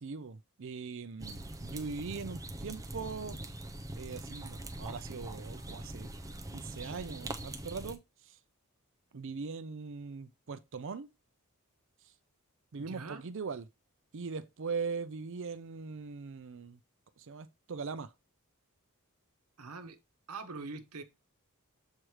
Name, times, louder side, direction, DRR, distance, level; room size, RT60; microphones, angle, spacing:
voice 1, 0.0-3.4 4.0-6.1 6.5-8.4 9.1-11.1 12.7-13.6 14.1-16.8 17.2-18.1, right 5 dB, 55° right, 0.5 m, -41 dB
sound 1, 1.2-8.0, right 1 dB, 15° right, 0.6 m, -43 dB
voice 2, 12.8-13.2 19.6-20.0 20.3-21.0, right 4 dB, 80° right, 1.0 m, -43 dB
7.5 x 3.1 x 4.8 m
head